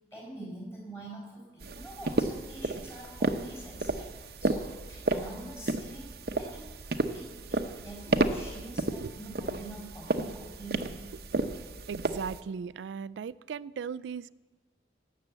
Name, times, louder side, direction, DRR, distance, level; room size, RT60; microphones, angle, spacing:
voice 1, 0.1-6.7 7.1-11.1, right 1 dB, 15° left, -3 dB, 5.7 m, -45 dB
sound 1, 1.6-12.4, right 2 dB, 60° right, 0.8 m, -32 dB
voice 2, 11.9-14.3, right 6 dB, 90° right, 16 dB, 0.3 m, -37 dB
17.5 x 6.7 x 8.0 m, 1.2 s
head